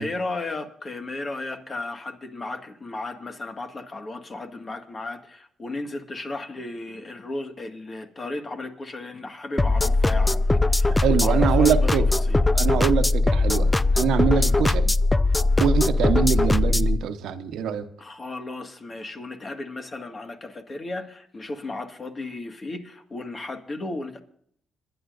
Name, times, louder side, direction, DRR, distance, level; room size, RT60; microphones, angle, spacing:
voice 1, 0.0-12.4 14.4-14.6 18.0-24.2, left 2 dB, 35° left, 6 dB, 1.8 m, -35 dB
sound 1, 9.6-17.0, left 2 dB, 15° left, 0.4 m, -20 dB
voice 2, 10.9-12.0 12.5-14.9 15.6-17.9, right 8 dB, 85° right, 9 dB, 1.0 m, -24 dB
26.5 x 11.5 x 2.6 m, 0.65 s
cardioid pair, 85°, 0 cm